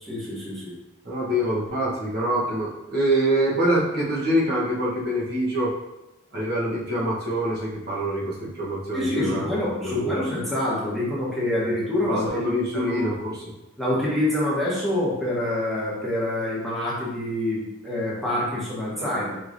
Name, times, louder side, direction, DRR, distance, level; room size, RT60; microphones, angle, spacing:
voice 1, 0.1-0.7 8.9-13.1 13.8-19.4, left 1 dB, ahead, -8 dB, 1.0 m, -26 dB
voice 2, 1.0-5.7 6.3-9.6 9.8-10.2 12.1-13.4, right 1 dB, 50° right, -6 dB, 1.0 m, -25 dB
4.8 x 3.0 x 2.5 m, 1.0 s
head